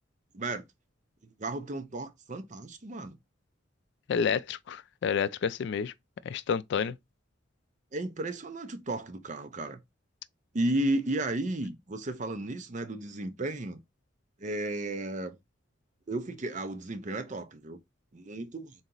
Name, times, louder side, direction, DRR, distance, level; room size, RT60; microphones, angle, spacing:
voice 1, 1.4-3.2 7.9-9.8 10.5-13.8 14.4-15.4 16.1-17.8 18.1-18.7, right 2 dB, 40° right, 0.6 m, -33 dB
voice 2, 4.1-5.9 6.2-7.0, left 6 dB, 60° left, 0.3 m, -29 dB
4.0 x 2.8 x 3.8 m
head